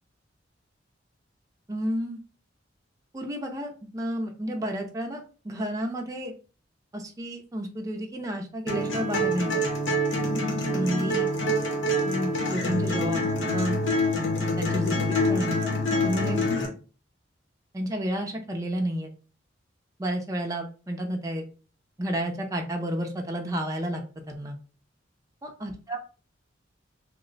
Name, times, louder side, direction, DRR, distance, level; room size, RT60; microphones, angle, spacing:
voice 1, 1.7-2.2 3.1-6.3 6.9-9.6 10.7-11.3 12.0-13.8 14.6-15.6 16.0-16.5 17.7-19.1 20.0-21.4 22.0-24.0 24.3-24.6 25.4-26.0, right 1 dB, 20° right, 2 dB, 0.4 m, -31 dB
sound 1, 8.7-16.7, left 1 dB, 90° left, 0.9 m, -26 dB
2.9 x 2.1 x 3.8 m, 0.37 s
head